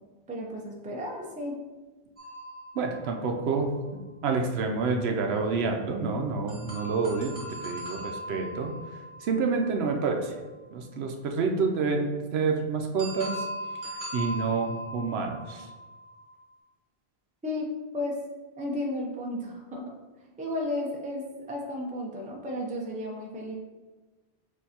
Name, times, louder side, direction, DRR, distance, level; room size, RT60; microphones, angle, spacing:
voice 1, 0.3-1.6 17.4-17.7 17.9-18.2 18.6-19.9 20.4-23.5, left 1 dB, 10° right, -1 dB, 0.4 m, -33 dB
sound 1, 2.2-3.9 6.5-10.4 13.0-16.5, right 1 dB, 35° right, 1.2 m, -40 dB
voice 2, 2.7-7.3 7.6-8.8 9.2-10.3 10.7-13.4 13.8-15.7, right 4 dB, 80° right, 3 dB, 0.8 m, -28 dB
6.3 x 2.7 x 2.8 m, 1.3 s
omnidirectional pair, 1.1 m